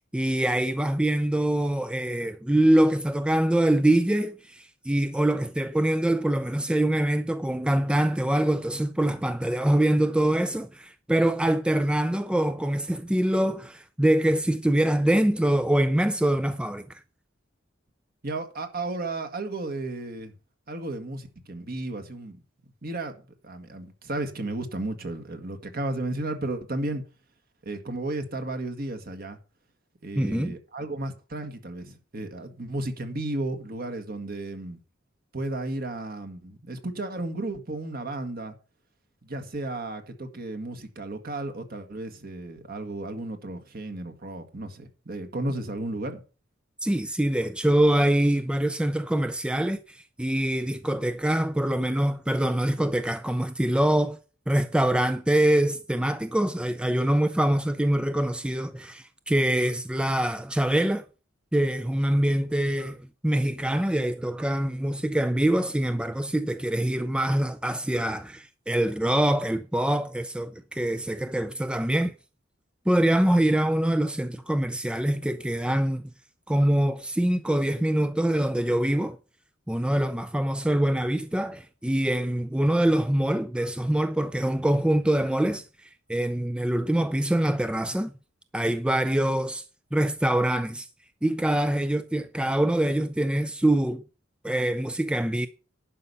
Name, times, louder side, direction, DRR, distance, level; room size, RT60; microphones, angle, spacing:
voice 1, 0.0-17.0 30.2-30.5 46.8-54.2 54.5-61.1 61.5-72.1 72.9-76.0 76.5-79.2 79.7-88.1 88.5-89.6 89.9-90.9 91.2-94.0 94.4-95.5, right 1 dB, 5° right, 0.4 m, -24 dB
voice 2, 18.2-20.3 20.7-22.4 22.8-27.0 27.6-29.4 30.0-34.8 35.3-38.5 39.2-46.2, right 2 dB, 50° right, 1.7 m, -33 dB
11.0 x 5.6 x 6.8 m
head